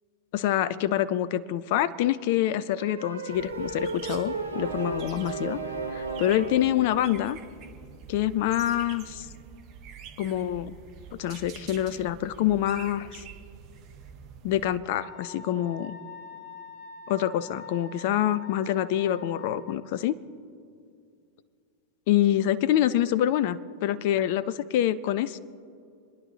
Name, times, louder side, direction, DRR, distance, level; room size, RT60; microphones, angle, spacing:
voice 1, 0.3-5.6 5.9-7.4 8.1-9.3 10.2-10.8 11.1-13.2 14.4-16.0 17.1-20.2 22.1-25.4, left 12 dB, 50° left, 17 dB, 0.6 m, -26 dB
sound 1, 2.8-6.8, right 3 dB, 85° right, 1.2 m, -34 dB
sound 2, 3.3-14.8, right 7 dB, 40° right, 1.7 m, -46 dB
Wind instrument woodwind instrument, 14.9-19.8, left 4 dB, 15° left, 2.4 m, -45 dB
29.0 x 10.5 x 3.2 m, 2.3 s
figure-of-eight pair, 90°, 0 cm